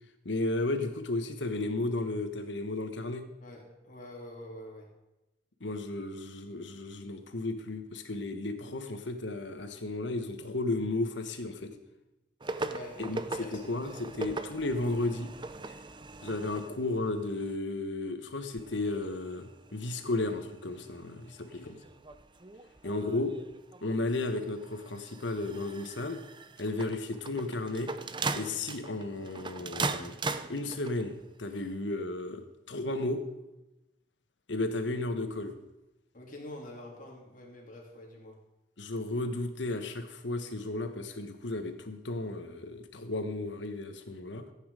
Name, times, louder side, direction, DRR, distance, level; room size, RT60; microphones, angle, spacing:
voice 1, 0.2-3.3 5.6-11.7 13.0-15.3 16.2-21.8 22.8-23.3 23.8-26.2 26.6-27.9 28.3-33.2 34.5-35.6 38.8-44.5, left 2 dB, 80° left, 8 dB, 1.4 m, -34 dB
voice 2, 3.4-4.9 12.6-13.7 21.4-21.8 36.1-38.4, left 1 dB, 45° left, -1 dB, 3.2 m, -46 dB
sound 1, 12.4-17.6 18.6-31.2 31.9-32.0, right 3 dB, 25° right, 0.6 m, -40 dB
14.5 x 8.9 x 5.0 m, 0.98 s
head